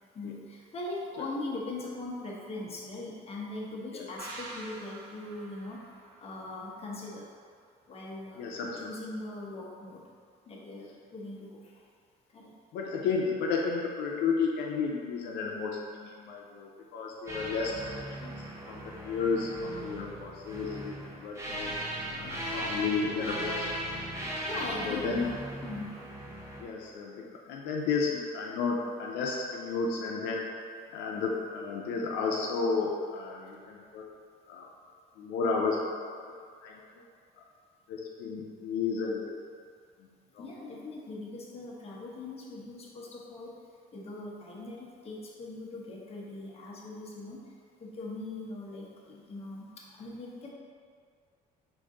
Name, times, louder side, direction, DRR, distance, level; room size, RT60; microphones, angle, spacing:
voice 1, 0.1-5.8 6.2-7.2 7.9-10.0 10.5-11.6 12.3-12.5 22.2-22.6 24.4-25.4 25.6-25.9 40.4-43.5 43.9-47.4 47.8-49.7 50.0-50.5, left 2 dB, 35° left, -4 dB, 0.9 m, -40 dB
sound 1, 4.2-7.6 7.9-8.0, right 2 dB, 70° right, 0.7 m, -47 dB
voice 2, 8.4-8.9 12.7-17.9 18.2-21.7 22.1-24.0 24.5-25.3 26.6-30.4 30.9-34.0 34.5-34.7 35.2-36.3 36.6-36.8 37.9-39.4 40.3-40.5, left 4 dB, 85° left, -2 dB, 0.5 m, -32 dB
sound 2, 17.3-26.6, right 1 dB, 15° right, 0.7 m, -38 dB
5.1 x 2.6 x 3.6 m, 2.1 s
cardioid pair, 110°, 17 cm